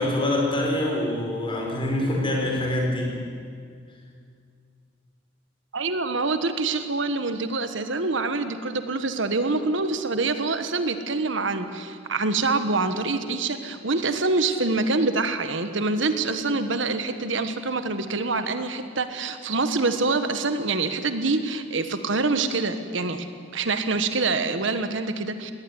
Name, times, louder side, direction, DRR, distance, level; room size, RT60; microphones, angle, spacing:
voice 1, 0.0-3.2, left 1 dB, 25° left, 0 dB, 4.9 m, -25 dB
voice 2, 5.7-23.3 23.5-25.5, right 3 dB, 65° right, 9 dB, 1.3 m, -25 dB
19.0 x 19.0 x 9.9 m, 2.2 s
head